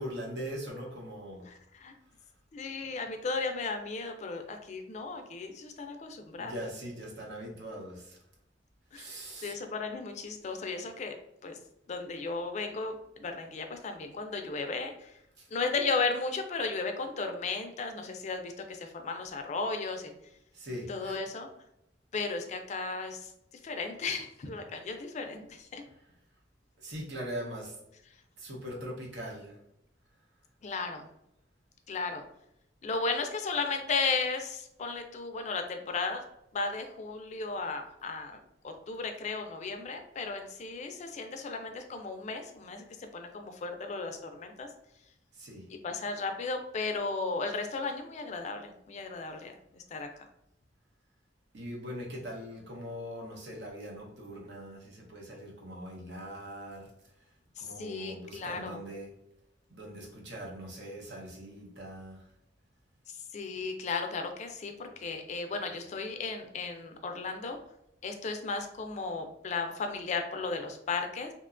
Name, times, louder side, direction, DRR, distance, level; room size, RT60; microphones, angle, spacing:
voice 1, 0.0-1.5 6.4-8.2 8.9-9.6 15.4-15.5 20.5-21.2 26.8-27.7 28.4-29.5 45.4-45.7 51.5-56.9 57.6-59.1 59.7-62.2, equal, 70° right, -1 dB, 0.8 m, -41 dB
voice 2, 1.4-1.9 2.5-6.6 8.9-11.1 11.4-11.6 11.9-15.1 15.5-20.1 20.9-21.5 22.1-23.3 23.6-25.8 30.6-31.0 31.9-32.2 32.8-36.2 36.5-38.4 38.6-44.7 45.7-50.1 57.6-58.8 63.3-67.6 68.0-71.3, left 4 dB, 40° left, 5 dB, 0.3 m, -35 dB
2.8 x 2.2 x 2.4 m, 0.81 s
head